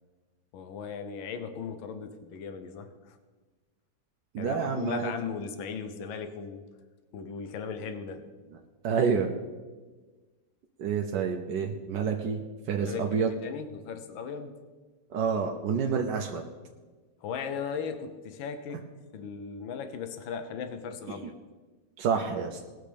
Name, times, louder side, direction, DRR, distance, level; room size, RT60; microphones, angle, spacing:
voice 1, 0.5-3.2 4.4-6.7 7.1-8.2 12.7-14.5 17.2-18.8 19.1-21.4, left 6 dB, 80° left, 9 dB, 1.7 m, -37 dB
voice 2, 4.3-5.1 8.8-9.3 10.8-13.3 15.1-16.4 22.0-22.6, right 6 dB, 65° right, 2 dB, 1.4 m, -28 dB
19.5 x 6.5 x 5.1 m, 1.3 s
omnidirectional pair, 2.1 m